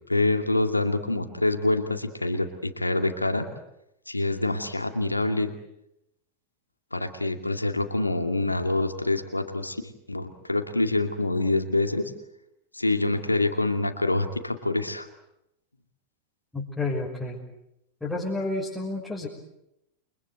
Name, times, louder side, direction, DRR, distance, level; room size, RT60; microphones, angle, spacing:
voice 1, 0.1-3.5 4.1-5.5 6.9-9.8 10.1-12.1 12.7-15.1, left 2 dB, 85° left, 6 dB, 2.4 m, -26 dB
voice 2, 16.5-17.4 18.0-19.3, left 2 dB, 5° left, -4 dB, 6.2 m, -30 dB
29.5 x 24.0 x 8.2 m, 0.84 s
figure-of-eight pair, 90°, 0 cm